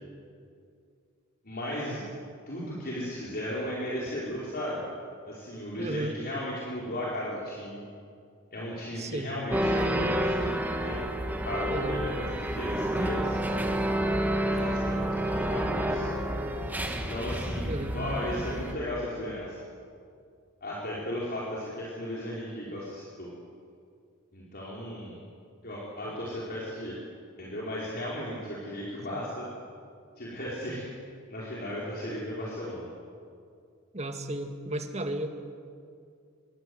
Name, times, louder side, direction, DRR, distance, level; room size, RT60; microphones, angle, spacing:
voice 1, 1.4-2.1 2.5-4.8 5.3-7.8 8.5-11.0 11.4-13.4 14.4-16.1 16.9-19.6 20.6-23.3 24.3-25.2 25.6-27.0 27.3-29.5 30.2-30.9 31.3-32.9, left 1 dB, 45° left, -6 dB, 4.9 m, -35 dB
voice 2, 5.8-6.2 9.0-9.3 11.7-12.0 17.7-18.0 29.1-29.3 33.9-35.3, right 1 dB, 30° right, 6 dB, 2.0 m, -34 dB
sound 1, 9.5-18.7, right 1 dB, 10° right, 1.8 m, -29 dB
26.0 x 23.0 x 8.0 m, 2.3 s
head